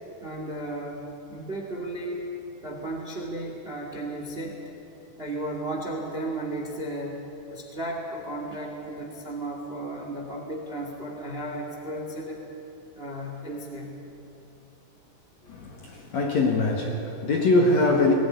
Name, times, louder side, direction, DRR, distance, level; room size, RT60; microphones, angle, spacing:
voice 1, 0.2-2.2 2.6-4.6 5.2-12.4 12.9-14.0, right 1 dB, 25° right, 1.4 m, -34 dB
voice 2, 15.5-18.1, left 2 dB, 55° left, 2.3 m, -23 dB
20.5 x 17.0 x 9.7 m
omnidirectional pair, 4.9 m